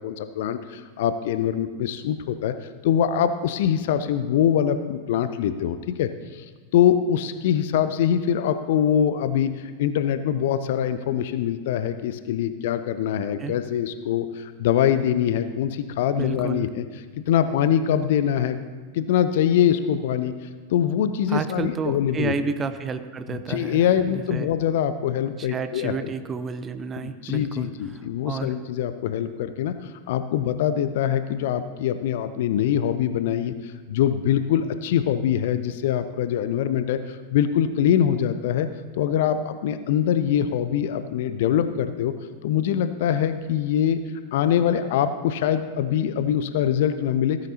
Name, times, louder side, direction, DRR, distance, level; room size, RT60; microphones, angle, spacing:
voice 1, 0.0-2.5 2.8-6.4 6.7-9.5 9.8-16.8 17.3-18.6 18.9-20.3 20.7-22.3 23.5-26.1 27.0-29.8 30.1-33.5 33.9-38.7 39.0-42.1 42.4-44.0 44.3-47.4, left 9 dB, 55° left, 11 dB, 0.5 m, -23 dB
voice 2, 16.1-16.7 21.3-24.5 25.4-28.6, right 5 dB, 20° right, 10 dB, 0.6 m, -31 dB
15.5 x 9.1 x 2.8 m, 1.4 s
figure-of-eight pair, 90°, 0 cm